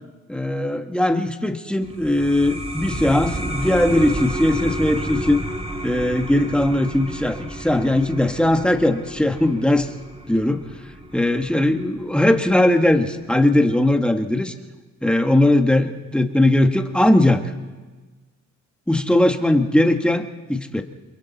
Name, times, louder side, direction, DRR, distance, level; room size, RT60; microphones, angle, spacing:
voice 1, 0.3-5.4 5.8-9.9 10.3-10.6 11.1-14.5 15.0-17.4 18.9-20.8, left 1 dB, 5° left, 5 dB, 1.6 m, -19 dB
sound 1, 1.8-13.0, right 1 dB, 20° right, 2.3 m, -32 dB
29.0 x 22.5 x 4.2 m, 1.3 s
cardioid pair, 90°, 30 cm